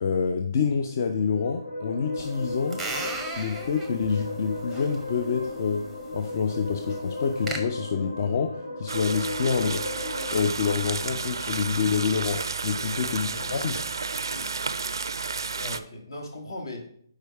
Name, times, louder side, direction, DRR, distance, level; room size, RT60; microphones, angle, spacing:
voice 1, 0.0-2.8 3.4-5.9 6.1-9.8 10.3-13.8, left 6 dB, 45° left, 6 dB, 0.5 m, -27 dB
sound 1, 0.9-10.4, left 2 dB, 90° left, 2.3 m, -35 dB
sound 2, 2.2-7.6, right 3 dB, 5° right, 0.6 m, -38 dB
sound 3, 8.9-15.8, right 4 dB, 75° right, 0.4 m, -32 dB
voice 2, 12.8-13.7 14.3-14.5 15.5-16.9, left 1 dB, 70° left, 3 dB, 1.5 m, -39 dB
4.9 x 4.6 x 4.6 m, 0.63 s
figure-of-eight pair, 150°, 2 cm